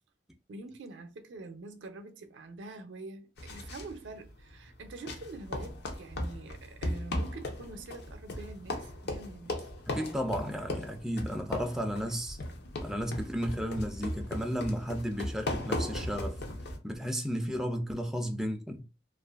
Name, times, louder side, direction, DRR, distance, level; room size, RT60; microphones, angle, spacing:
voice 1, 0.5-9.7, right 2 dB, 80° right, 0.5 m, -45 dB
sound 1, 3.4-16.8, left 1 dB, 65° left, 0.6 m, -38 dB
voice 2, 9.9-12.4 12.8-16.4 16.8-18.8, equal, 5° right, 0.3 m, -33 dB
2.5 x 2.4 x 2.3 m
head